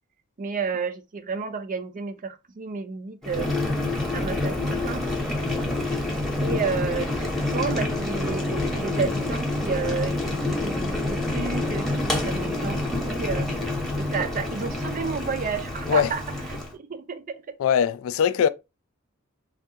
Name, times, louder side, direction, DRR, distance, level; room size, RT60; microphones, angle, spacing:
voice 1, 0.4-3.5 4.1-5.0 6.4-13.7 13.9-16.2 16.5-17.6, right 5 dB, 40° right, 0.4 m, -31 dB
Boiling, 3.2-16.7, left 2 dB, ahead, 0.8 m, -27 dB
voice 2, 17.6-18.5, left 7 dB, 70° left, 0.3 m, -21 dB
3.4 x 2.3 x 2.8 m
head